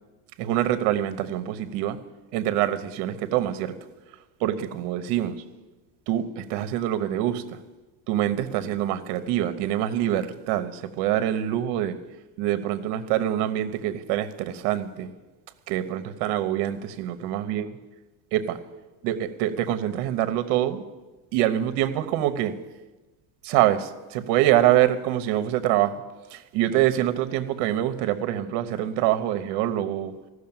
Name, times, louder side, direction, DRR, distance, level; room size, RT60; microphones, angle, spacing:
voice 1, 0.4-2.0 2.3-3.8 4.4-5.4 6.1-7.6 8.1-12.0 12.4-15.1 15.7-17.6 18.3-18.6 19.0-20.8 21.3-22.6 23.4-26.0 26.3-30.1, right 12 dB, 60° right, 11 dB, 1.1 m, -25 dB
14.5 x 6.5 x 8.8 m, 1.2 s
supercardioid pair, 130°, 46 cm